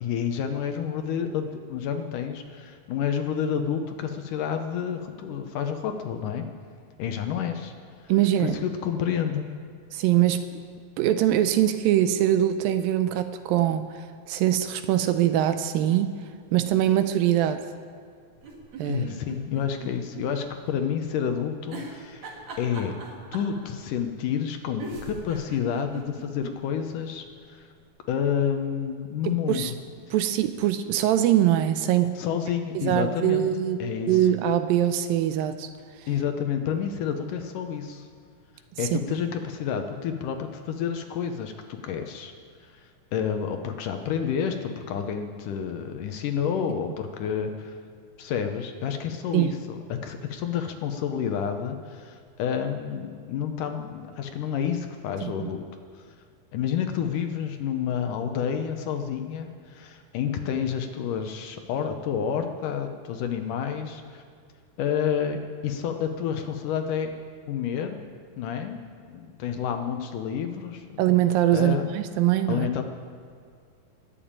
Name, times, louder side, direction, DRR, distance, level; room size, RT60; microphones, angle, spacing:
voice 1, 0.0-6.5 7.0-7.7 8.0-8.1 8.4-9.5 18.9-22.9 23.3-27.7 28.1-29.8 32.2-33.5 33.8-34.2 36.1-38.1 38.8-42.3 43.1-47.7 48.2-55.7 56.5-64.2 64.8-67.1 67.5-68.0 68.4-71.0 71.5-71.9 72.5-72.8, left 8 dB, 70° left, 6 dB, 2.2 m, -29 dB
voice 2, 8.1-8.6 9.9-10.4 11.0-16.2 16.5-17.6 18.8-19.1 29.3-29.7 30.1-32.2 32.8-33.8 34.1-35.7 38.8-39.0 49.3-49.5 55.2-55.5 71.0-72.7, right 12 dB, 80° right, 10 dB, 2.3 m, -23 dB
sound 1, 18.4-20.3 20.6-20.7 21.7-23.6 24.4-24.5 24.8-26.5 27.0-27.1 27.3-27.4, right 3 dB, 55° right, 3.2 m, -39 dB
20.5 x 7.1 x 8.8 m, 2.1 s
omnidirectional pair, 4.3 m